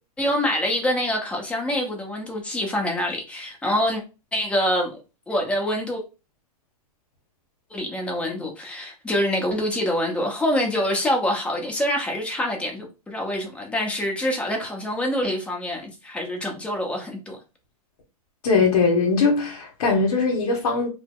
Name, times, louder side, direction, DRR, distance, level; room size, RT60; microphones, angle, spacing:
voice 1, 0.2-4.0 4.3-4.9 5.3-6.0 7.7-17.4, left 1 dB, 5° left, 0.7 m, -25 dB
voice 2, 18.4-20.9, left 4 dB, 70° left, 0.9 m, -20 dB
2.8 x 2.0 x 3.5 m
hypercardioid pair, 140°, 20 cm